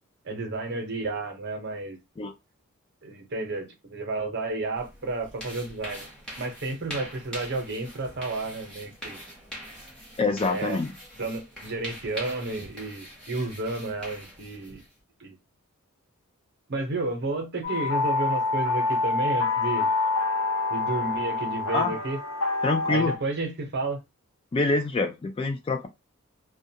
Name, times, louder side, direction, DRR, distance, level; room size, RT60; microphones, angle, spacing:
voice 1, 0.2-2.0 3.0-6.1 6.4-9.2 10.5-10.8 11.1-14.8 15.2-15.4 16.7-19.9 20.7-22.2 22.9-24.0, right 2 dB, 50° right, 0.8 m, -31 dB
sound 1, 4.8-15.0, equal, 5° left, 0.9 m, -43 dB
voice 2, 10.2-10.9 21.7-21.9 22.6-23.1 24.5-25.9, left 3 dB, 25° left, 0.3 m, -25 dB
sound 2, 17.6-23.2, left 3 dB, 70° left, 0.6 m, -26 dB
2.3 x 2.2 x 2.8 m
head